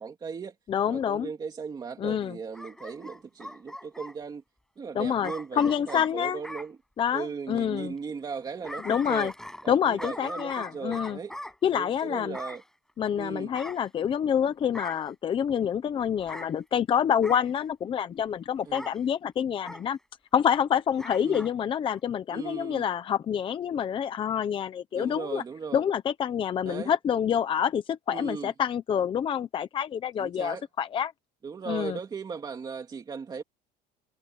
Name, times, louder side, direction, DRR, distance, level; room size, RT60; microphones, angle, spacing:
voice 1, 0.0-0.5 0.9-4.4 4.8-6.8 7.1-9.3 9.6-11.3 11.7-12.6 13.1-13.5 18.6-18.9 21.2-21.5 22.3-22.9 24.9-25.8 26.6-26.9 28.1-28.5 30.2-30.6 31.4-33.4, right 5 dB, 20° right, 2.7 m, -37 dB
voice 2, 0.7-1.3 2.0-2.3 5.0-6.4 7.0-7.9 8.9-9.3 9.7-11.2 11.6-12.4 13.0-20.0 20.3-25.4 25.7-31.1 31.7-32.0, left 8 dB, 25° left, 0.8 m, -27 dB
Bark / Growling, 2.5-4.2 5.2-6.7 8.3-9.7 10.0-11.6 12.3-12.7 13.5-14.3 14.7-15.1 16.2-16.5 17.2-17.5 18.7-19.0 19.6-19.9 21.0-21.5 21.9-22.0, left 1 dB, ahead, 6.1 m, -40 dB
cardioid pair, 160°, 19 cm